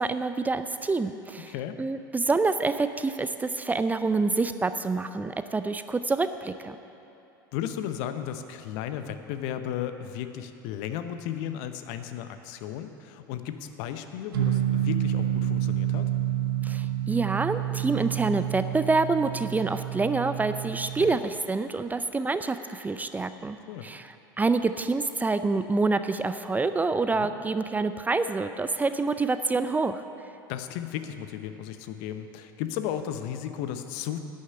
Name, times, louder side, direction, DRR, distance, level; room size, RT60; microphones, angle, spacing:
voice 1, 0.0-6.8 16.6-23.6 23.8-30.0, right 3 dB, 15° right, 10 dB, 0.4 m, -27 dB
voice 2, 1.5-1.8 7.5-16.1 21.0-21.2 23.7-23.9 27.2-27.3 30.5-34.2, left 10 dB, 60° left, 9 dB, 0.8 m, -34 dB
sound 1, 14.3-21.2, right 12 dB, 75° right, 0.9 m, -29 dB
11.0 x 6.5 x 8.8 m, 2.9 s
hypercardioid pair, 80°, 11 cm